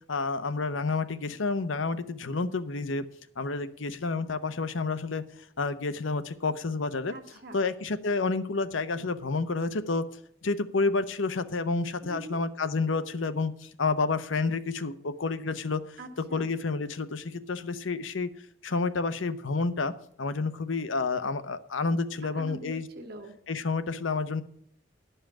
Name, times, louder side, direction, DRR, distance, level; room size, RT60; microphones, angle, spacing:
voice 1, 0.1-3.1 3.4-5.2 5.6-7.1 7.5-10.0 10.4-16.0 16.3-18.3 18.6-19.9 20.2-22.9 23.5-24.4, left 3 dB, 80° left, 12 dB, 0.8 m, -29 dB
voice 2, 7.1-7.6 12.0-12.4 16.0-16.5 22.2-23.3, right 2 dB, 50° right, 6 dB, 1.6 m, -43 dB
11.5 x 5.6 x 8.4 m, 0.64 s
head